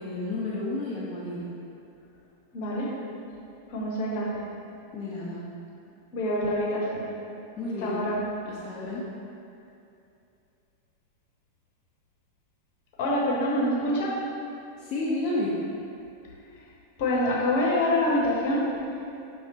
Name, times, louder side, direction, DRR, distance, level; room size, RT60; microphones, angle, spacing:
voice 1, 0.0-1.5 4.9-5.5 7.6-8.0 8.4-9.1 14.8-15.6, left 2 dB, 35° left, -7 dB, 0.6 m, -31 dB
voice 2, 2.5-2.9 3.7-4.4 6.1-7.0 7.8-8.2 13.0-14.2 17.0-18.7, left 1 dB, 50° left, -4 dB, 0.9 m, -26 dB
5.8 x 3.1 x 2.9 m, 2.6 s
figure-of-eight pair, 90°, 0 cm